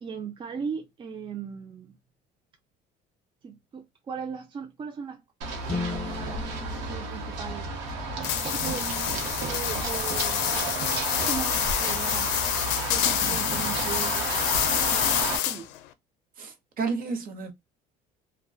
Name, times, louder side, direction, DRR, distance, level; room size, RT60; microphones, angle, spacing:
voice 1, 0.0-2.0 3.4-5.2 5.9-7.8 8.4-8.8 9.4-10.6 11.1-12.4 12.9-14.3 14.8-15.1 15.4-15.8, right 6 dB, 25° right, 0.4 m, -38 dB
Run, 5.4-15.4, right 3 dB, 85° right, 0.9 m, -32 dB
sound 1, 5.7-8.1, left 4 dB, 20° left, 0.6 m, -36 dB
sound 2, 8.2-15.8, left 12 dB, 90° left, 0.4 m, -27 dB
voice 2, 16.4-17.5, right 4 dB, 50° right, 0.9 m, -32 dB
2.5 x 2.2 x 2.3 m
cardioid pair, 115°, 18 cm